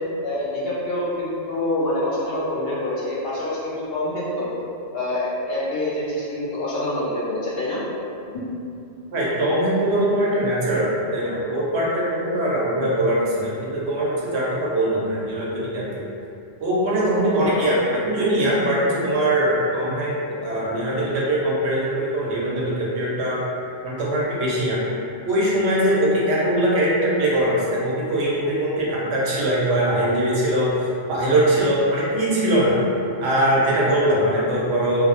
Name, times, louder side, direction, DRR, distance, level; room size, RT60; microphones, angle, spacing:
voice 1, 0.2-4.5 4.9-7.8, left 1 dB, 65° left, -7 dB, 0.8 m, -26 dB
voice 2, 9.1-16.0 16.6-23.4 23.8-24.8 25.2-32.8 33.2-35.1, right 1 dB, 85° right, -5 dB, 0.9 m, -21 dB
2.3 x 2.0 x 2.8 m, 2.6 s
omnidirectional pair, 1.1 m